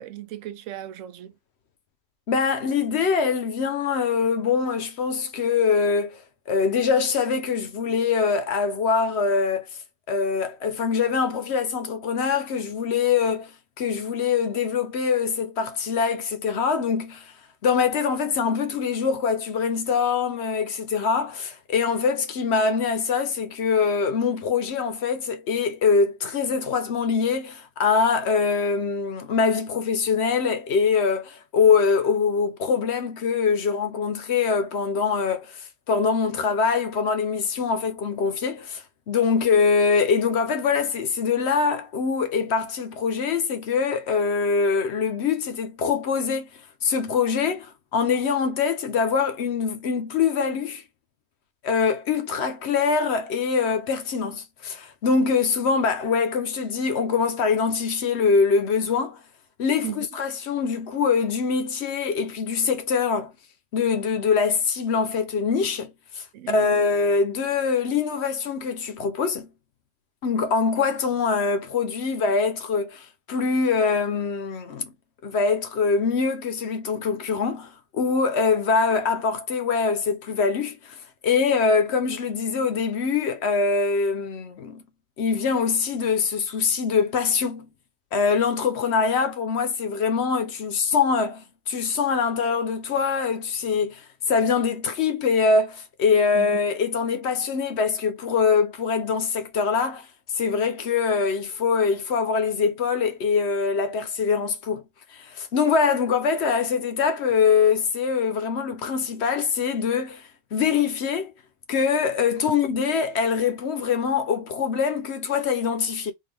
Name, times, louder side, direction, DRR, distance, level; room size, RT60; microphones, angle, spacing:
voice 1, 0.0-1.3 59.8-60.1 66.3-66.9 96.3-96.6, right 12 dB, 85° right, 0.9 m, -36 dB
voice 2, 2.3-9.6 10.1-13.5 13.8-17.3 17.6-46.5 46.8-50.8 51.6-59.2 59.6-63.3 63.7-69.5 70.2-74.9 75.2-81.0 81.2-84.8 85.2-87.7 88.1-100.1 100.3-104.8 105.1-110.2 110.5-111.3 111.7-116.1, left 5 dB, 65° left, 0.9 m, -23 dB
3.7 x 2.4 x 3.3 m
omnidirectional pair, 1.3 m